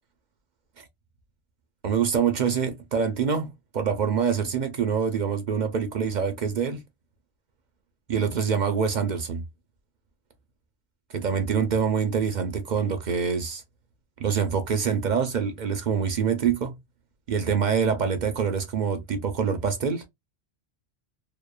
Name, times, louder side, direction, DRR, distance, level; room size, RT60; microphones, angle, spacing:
voice 1, 1.8-6.8 8.1-9.4 11.1-13.6 14.2-16.8 17.3-20.1, right 6 dB, 55° right, 0.6 m, -25 dB
2.8 x 2.1 x 2.2 m
omnidirectional pair, 1.1 m